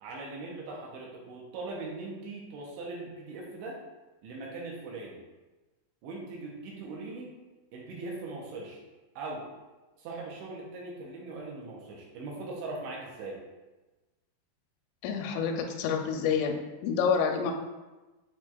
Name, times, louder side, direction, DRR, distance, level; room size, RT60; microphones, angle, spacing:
voice 1, 0.0-3.8 4.2-5.2 6.0-7.3 7.7-8.8 9.2-9.5 10.0-13.4, right 3 dB, 85° right, -2 dB, 2.8 m, -40 dB
voice 2, 15.0-17.5, left 6 dB, 85° left, 4 dB, 3.0 m, -28 dB
8.1 x 2.9 x 2.2 m, 1.2 s
omnidirectional pair, 5.4 m